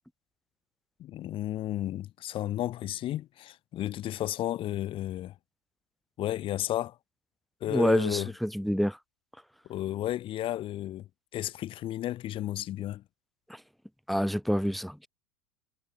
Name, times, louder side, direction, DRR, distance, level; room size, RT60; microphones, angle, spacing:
voice 1, 1.0-5.4 6.2-7.0 7.6-8.3 9.7-11.1 11.3-13.0, left 13 dB, 40° left, 3.5 m, -33 dB
voice 2, 7.7-9.0 13.5-13.6 14.1-15.1, equal, ahead, 1.3 m, -27 dB
figure-of-eight pair, 85°, 13 cm